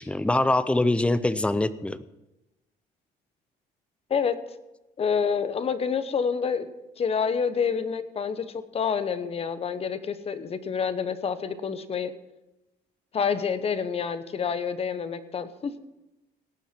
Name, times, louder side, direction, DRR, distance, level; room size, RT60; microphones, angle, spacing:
voice 1, 0.0-2.0, left 2 dB, 5° left, 15 dB, 0.6 m, -24 dB
voice 2, 5.0-6.7 7.0-12.1 13.1-15.8, left 6 dB, 35° left, 12 dB, 1.0 m, -28 dB
18.0 x 7.3 x 5.9 m, 0.98 s
cardioid pair, 110°, 17 cm